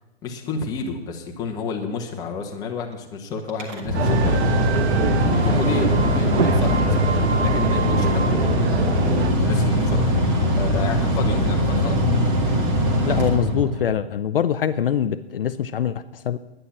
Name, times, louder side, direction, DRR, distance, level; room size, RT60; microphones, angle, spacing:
voice 1, 0.2-4.6 5.4-8.8 9.1-12.0, left 4 dB, 10° left, 2 dB, 1.1 m, -30 dB
Mechanical fan, 3.5-14.0, equal, 20° right, 1.8 m, -21 dB
sound 1, 3.9-9.3, right 6 dB, 80° right, 1.0 m, -26 dB
voice 2, 5.4-5.8 13.1-16.4, left 9 dB, 60° left, 10 dB, 0.6 m, -24 dB
10.0 x 9.7 x 7.3 m, 0.98 s
hypercardioid pair, 155°, 32 cm